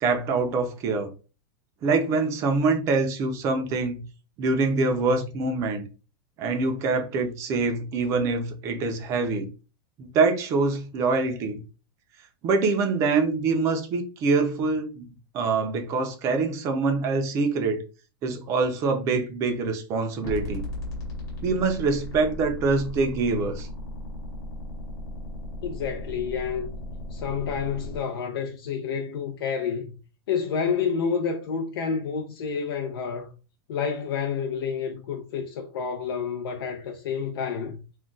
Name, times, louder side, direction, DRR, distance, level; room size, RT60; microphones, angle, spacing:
voice 1, 0.0-1.1 1.8-4.0 4.4-5.9 6.4-9.5 10.0-11.6 12.4-15.0 15.3-17.8 18.2-20.6 21.4-23.7, right 4 dB, 25° right, 0.4 m, -25 dB
sound 1, 20.2-28.0, left 1 dB, 25° left, 0.9 m, -36 dB
voice 2, 25.6-26.7 27.1-30.0 30.3-33.3 33.7-37.8, left 6 dB, 80° left, 0.5 m, -29 dB
2.3 x 2.1 x 3.8 m
supercardioid pair, 165°, 12 cm